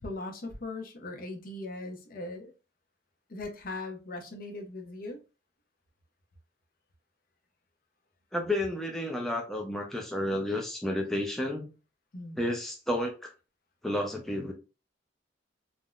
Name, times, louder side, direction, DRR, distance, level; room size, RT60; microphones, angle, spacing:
voice 1, 0.0-2.5 3.3-5.2 12.1-12.4, left 2 dB, 50° left, 4 dB, 0.6 m, -39 dB
voice 2, 8.3-11.7 12.4-13.3 13.8-14.5, left 1 dB, ahead, 0 dB, 0.4 m, -31 dB
3.5 x 2.1 x 2.3 m, 0.30 s
head